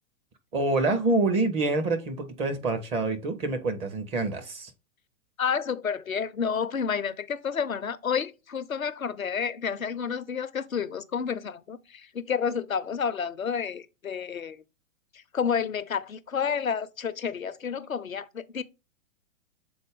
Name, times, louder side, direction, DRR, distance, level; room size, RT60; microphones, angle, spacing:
voice 1, 0.5-4.7, right 3 dB, 15° right, 0.6 m, -26 dB
voice 2, 5.4-14.6 15.1-18.6, left 7 dB, 80° left, 0.7 m, -30 dB
6.9 x 3.9 x 3.5 m
figure-of-eight pair, 110°, 40 cm